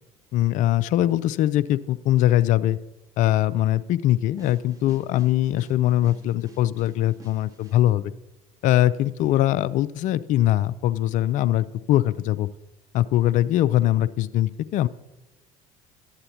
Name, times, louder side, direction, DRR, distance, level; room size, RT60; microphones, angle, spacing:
voice 1, 0.3-2.8 3.2-8.1 8.6-12.5 12.9-14.9, left 13 dB, 45° left, 17 dB, 0.4 m, -22 dB
sound 1, 4.4-7.8, right 1 dB, 20° right, 1.2 m, -50 dB
12.0 x 8.7 x 2.8 m, 1.1 s
figure-of-eight pair, 65°, 18 cm